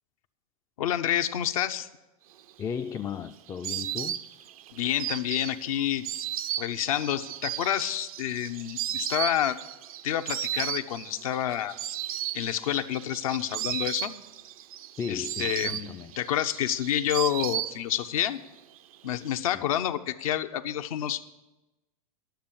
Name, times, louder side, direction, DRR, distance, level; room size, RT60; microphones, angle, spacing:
voice 1, 0.8-1.9 4.7-6.0 6.5-9.6 10.0-11.8 12.3-14.1 15.1-15.9 16.2-18.4 19.0-21.2, left 11 dB, 70° left, 0.7 m, -28 dB
Insect, 2.5-18.2 18.5-19.3, right 12 dB, 75° right, 0.5 m, -35 dB
voice 2, 2.6-4.2 15.0-16.1 19.5-19.7, left 7 dB, 15° left, 0.3 m, -35 dB
11.5 x 6.9 x 7.4 m
hypercardioid pair, 110°, 19 cm